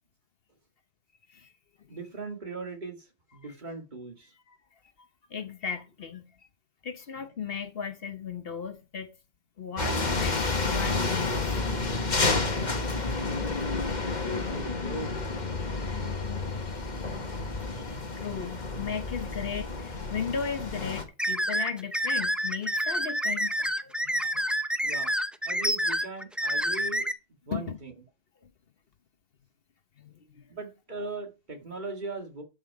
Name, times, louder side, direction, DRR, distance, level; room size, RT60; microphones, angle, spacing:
voice 1, 1.9-4.3 14.1-15.2 24.8-25.1 25.5-27.1 27.5-27.9 30.5-32.4, right 3 dB, 45° right, 2.1 m, -39 dB
voice 2, 5.0-6.3 6.8-9.1 9.6-11.3 18.2-24.5 27.5-27.8 28.4-28.5 30.0-30.4, left 6 dB, 65° left, 1.1 m, -36 dB
sound 1, 9.8-21.0, left 3 dB, 45° left, 1.5 m, -30 dB
sound 2, 21.2-27.1, equal, ahead, 0.5 m, -28 dB
12.0 x 5.7 x 4.7 m
omnidirectional pair, 1.1 m